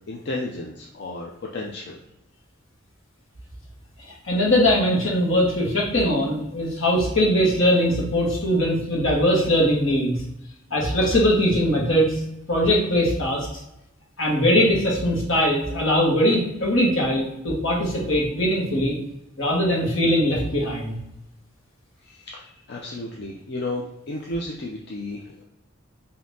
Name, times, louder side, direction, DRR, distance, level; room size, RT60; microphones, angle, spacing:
voice 1, 0.1-2.0 22.0-25.4, left 2 dB, 55° left, -2 dB, 0.5 m, -33 dB
voice 2, 4.1-10.2 10.7-12.2 12.5-13.5 14.2-18.9 19.4-21.0, equal, 75° left, -3 dB, 1.4 m, -21 dB
5.2 x 2.8 x 2.7 m, 0.86 s
head